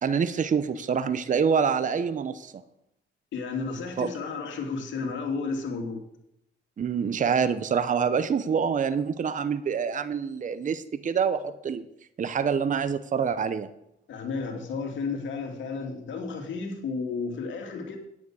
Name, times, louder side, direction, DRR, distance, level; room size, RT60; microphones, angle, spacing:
voice 1, 0.0-2.5 4.0-4.1 6.8-11.9 12.2-13.7, right 6 dB, 40° right, 12 dB, 0.8 m, -26 dB
voice 2, 3.3-6.0 14.1-18.0, left 4 dB, 70° left, 3 dB, 2.6 m, -32 dB
9.6 x 9.5 x 6.3 m, 0.80 s
cardioid pair, 90°, 20 cm